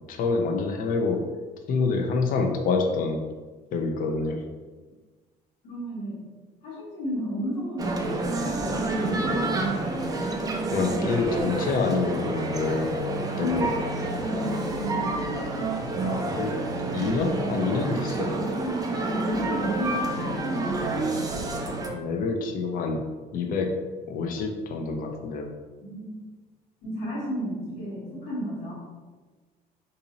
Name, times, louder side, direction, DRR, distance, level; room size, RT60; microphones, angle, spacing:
voice 1, 0.1-1.3 1.7-3.2 3.7-4.4 10.7-12.9 13.4-13.7 16.0-16.5 16.9-18.4 21.9-23.0 23.3-23.8 24.1-25.5, left 4 dB, 55° left, 4 dB, 0.5 m, -27 dB
voice 2, 5.6-6.3 6.6-9.6 13.3-15.3 18.1-21.0 25.8-26.2 26.8-28.7, equal, 85° left, -10 dB, 1.5 m, -33 dB
Male speech man speaking, 7.8-21.9, right 2 dB, 20° right, 0.5 m, -29 dB
2.7 x 2.7 x 3.9 m, 1.3 s
cardioid pair, 110°, 17 cm